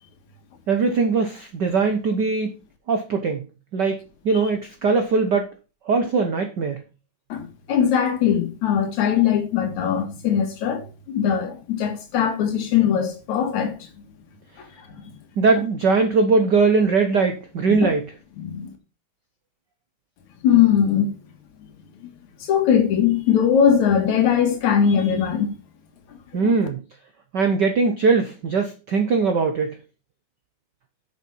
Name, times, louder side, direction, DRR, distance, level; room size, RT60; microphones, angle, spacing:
voice 1, 0.7-2.5 2.9-3.5 3.7-5.5 5.9-6.8 15.4-18.1 26.3-26.8 27.3-29.8, right 4 dB, 90° right, 0.9 m, -20 dB
voice 2, 7.3-13.8 14.9-15.0 17.7-17.9 18.4-18.7 20.4-21.1 22.0-22.1 22.4-25.5 26.4-26.6, left 8 dB, 75° left, 2.9 m, -20 dB
7.4 x 6.6 x 5.4 m
omnidirectional pair, 3.4 m